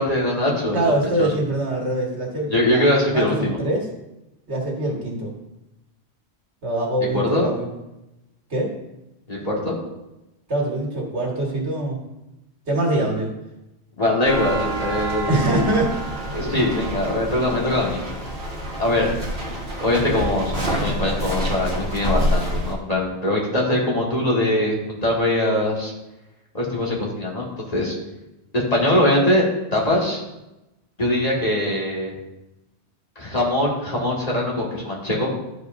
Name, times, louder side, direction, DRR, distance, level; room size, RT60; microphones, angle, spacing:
voice 1, 0.0-0.9 1.2-1.3 2.5-3.6 7.1-7.5 9.3-9.8 14.0-15.4 16.3-18.0 18.8-19.1 19.5-25.9 26.5-28.0 28.5-29.4 29.7-30.2 31.0-32.1 33.2-35.3, left 1 dB, 35° left, -4 dB, 1.9 m, -22 dB
voice 2, 0.7-3.9 4.5-5.3 6.6-7.7 8.5-8.7 10.5-12.0 12.7-13.3 15.3-16.0 16.5-16.6 17.5-17.6, right 1 dB, 80° right, -2 dB, 2.0 m, -24 dB
sound 1, 14.3-22.7, right 1 dB, 60° right, 1.7 m, -27 dB
12.5 x 4.9 x 2.6 m, 0.95 s
omnidirectional pair, 1.1 m